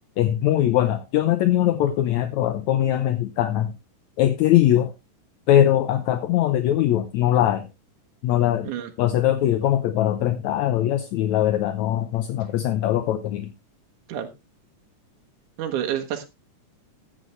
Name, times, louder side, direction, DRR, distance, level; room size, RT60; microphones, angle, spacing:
voice 1, 0.2-3.7 4.2-4.9 5.5-7.7 8.2-8.7 9.0-13.5, left 12 dB, 75° left, 10 dB, 1.9 m, -21 dB
voice 2, 15.6-16.2, right 10 dB, 70° right, 4 dB, 2.5 m, -28 dB
14.0 x 9.1 x 3.2 m, 0.25 s
omnidirectional pair, 3.8 m